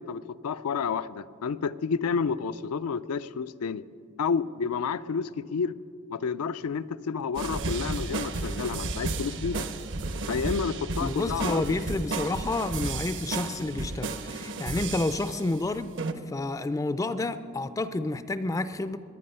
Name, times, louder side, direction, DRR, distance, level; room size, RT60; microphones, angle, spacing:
voice 1, 0.0-3.8 4.2-5.7 6.1-9.7 10.3-11.8, left 5 dB, 90° left, 14 dB, 0.4 m, -30 dB
sound 1, 6.6-8.8 9.1-16.4, right 1 dB, 80° right, 1.2 m, -55 dB
sound 2, 7.3-15.6 16.0-16.1, right 3 dB, 55° right, 0.7 m, -33 dB
voice 2, 11.0-16.0 16.3-19.0, left 2 dB, 15° left, 13 dB, 0.3 m, -30 dB
21.5 x 9.3 x 5.5 m, 2.4 s
head